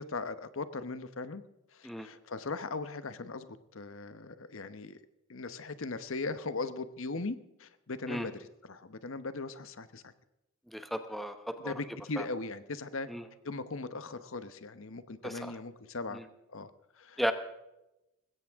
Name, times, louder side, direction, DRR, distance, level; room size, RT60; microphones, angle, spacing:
voice 1, 0.0-1.4 1.7-5.0 5.3-8.3 8.6-10.1 11.6-13.1 13.4-16.2 16.5-16.7 17.0-17.3, left 3 dB, 70° left, 12 dB, 0.9 m, -39 dB
voice 2, 10.7-11.7 12.2-12.3 13.1-13.2 15.2-15.5 16.1-16.2 17.2-17.3, equal, ahead, 8 dB, 1.0 m, -34 dB
20.0 x 16.5 x 3.6 m, 0.91 s
head